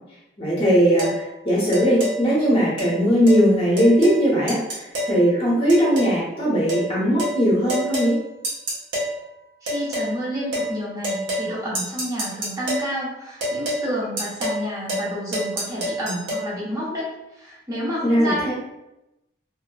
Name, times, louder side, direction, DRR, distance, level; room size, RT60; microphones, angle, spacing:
voice 1, 0.4-8.2 18.0-18.5, equal, 30° left, -6 dB, 0.7 m, -19 dB
sound 1, 1.0-1.2 1.7-2.2 2.8-2.9 3.3-3.4 3.8-4.2 4.5-5.2 5.7-6.2 6.7-6.9 7.2-7.4 7.7-8.1 8.4-9.1 9.7-10.1 10.5-10.7 11.0-11.5 11.7-12.9 13.4-13.8 14.2-14.6 14.9-15.1 15.3-16.4, equal, 85° right, 0.9 m, -27 dB
voice 2, 9.6-18.5, equal, 20° right, -8 dB, 0.8 m, -29 dB
2.7 x 2.5 x 2.2 m, 0.92 s
head